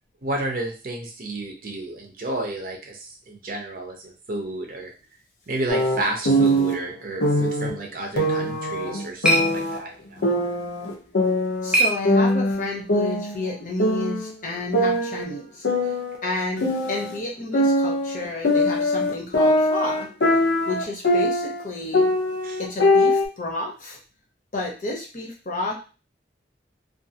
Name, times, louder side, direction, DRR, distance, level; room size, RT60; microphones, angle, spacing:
voice 1, 0.2-4.9 5.5-10.3 22.4-22.6, right 2 dB, 50° right, 2 dB, 0.6 m, -31 dB
sound 1, 5.7-6.7 7.2-7.7 8.2-9.8 10.2-11.8 12.0-13.5 13.8-14.3 14.7-17.2 17.5-21.6 21.9-23.3, left 1 dB, 80° left, 0.7 m, -22 dB
sound 2, 8.5-12.7, right 1 dB, 5° right, 0.3 m, -28 dB
voice 2, 11.6-15.9 16.2-20.1 20.7-22.1 22.6-24.0 24.5-25.7, left 2 dB, 45° left, -1 dB, 0.7 m, -31 dB
2.5 x 2.4 x 2.7 m, 0.34 s
head